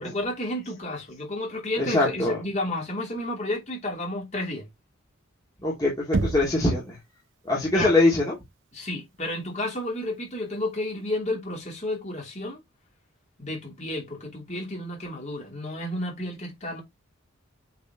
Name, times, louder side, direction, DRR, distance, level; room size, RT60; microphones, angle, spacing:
voice 1, 0.0-4.7 7.7-8.0 8.7-12.6 13.4-16.8, left 1 dB, 35° left, 2.9 m, -31 dB
voice 2, 1.8-2.4 5.6-7.0 7.5-8.3, left 2 dB, 20° left, 2.2 m, -23 dB
Knock, 6.1-6.8, right 3 dB, 60° right, 0.6 m, -27 dB
8.2 x 4.3 x 2.9 m
head